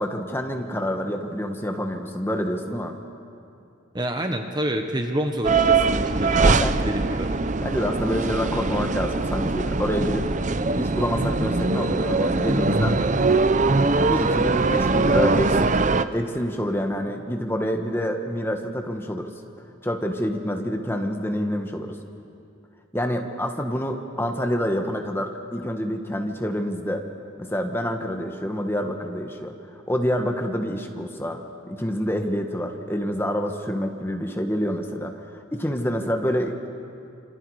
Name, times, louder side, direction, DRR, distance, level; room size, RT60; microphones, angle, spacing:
voice 1, 0.0-3.0 6.5-6.9 7.6-10.3 10.8-13.0 14.0-15.8 16.1-19.3 19.8-22.0 22.9-27.0 27.4-36.7, equal, 10° left, 4 dB, 1.5 m, -27 dB
voice 2, 3.9-7.3, right 1 dB, 20° right, 5 dB, 1.2 m, -28 dB
sound 1, 5.4-16.0, right 3 dB, 35° right, 0.7 m, -22 dB
29.5 x 27.0 x 4.9 m, 2.5 s
head